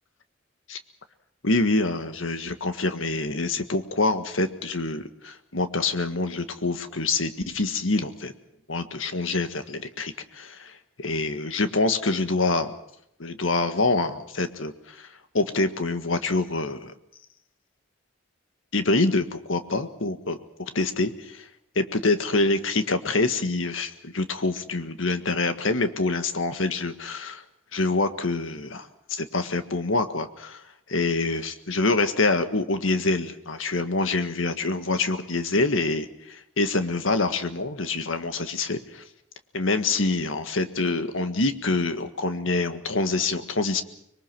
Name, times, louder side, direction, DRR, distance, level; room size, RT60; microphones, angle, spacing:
voice 1, 1.4-8.3 8.7-12.8 13.2-15.1 15.3-16.9 18.7-21.5 21.8-27.4 27.7-30.6 30.9-39.0 39.5-43.8, left 3 dB, 80° left, 9 dB, 1.7 m, -26 dB
25.5 x 22.0 x 6.2 m, 0.74 s
head